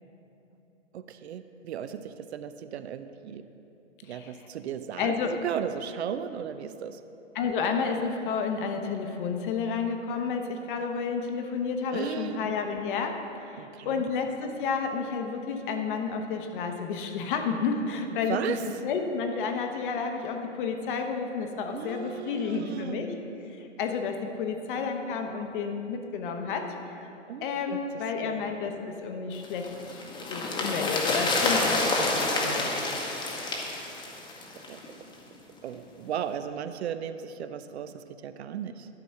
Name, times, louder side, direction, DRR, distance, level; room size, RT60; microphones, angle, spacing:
voice 1, 0.9-3.5 4.0-7.0 11.9-12.4 13.6-14.0 18.3-18.6 21.7-23.0 27.3-27.8 28.2-28.6 34.7-34.8 35.6-38.9, right 9 dB, 65° right, 11 dB, 0.5 m, -36 dB
voice 2, 5.0-5.3 7.3-13.2 13.5-23.1 23.4-26.7 27.4-30.0 30.3-32.8, left 5 dB, 45° left, 5 dB, 0.9 m, -31 dB
sound 1, 29.4-34.9 35.1-35.2, left 2 dB, 15° left, 0.9 m, -28 dB
11.5 x 4.1 x 5.7 m, 2.9 s
hypercardioid pair, 125°, 36 cm